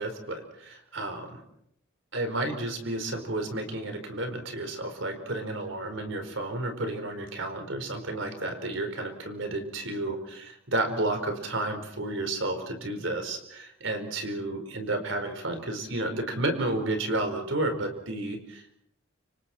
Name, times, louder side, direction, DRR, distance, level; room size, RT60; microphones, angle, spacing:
voice 1, 0.0-1.4 2.1-18.7, right 2 dB, 65° right, 6 dB, 4.6 m, -31 dB
29.5 x 26.5 x 4.4 m, 0.75 s
head